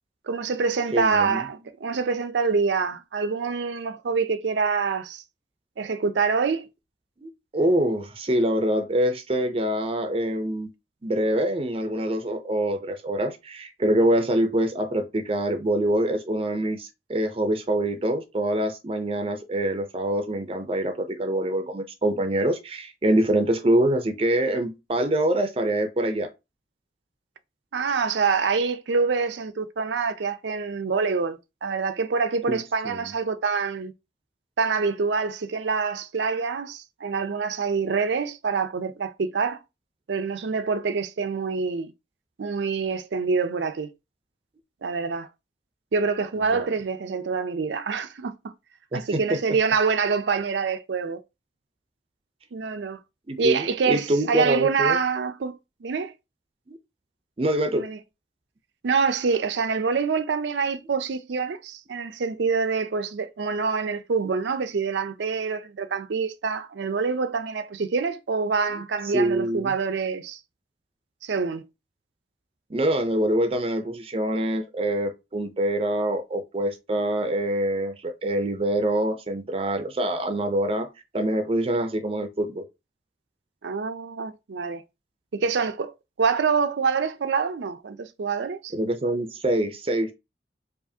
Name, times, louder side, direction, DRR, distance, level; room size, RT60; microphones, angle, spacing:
voice 1, 0.3-5.2 5.8-6.7 27.7-33.9 34.6-39.6 40.1-41.9 42.4-43.9 44.8-45.3 45.9-48.5 48.9-51.2 52.5-53.0 53.4-55.5 55.8-56.1 57.7-58.0 58.8-70.4 71.2-71.7 83.6-84.8 85.3-88.7, right 5 dB, 80° right, 0.5 m, -26 dB
voice 2, 0.9-1.4 7.2-10.7 11.0-26.3 32.5-33.0 46.5-46.7 48.9-49.4 53.3-55.0 56.7-56.8 57.4-57.9 69.1-69.7 72.7-80.9 81.1-82.7 88.7-90.1, right 1 dB, 30° right, 0.5 m, -25 dB
4.8 x 2.5 x 2.7 m
head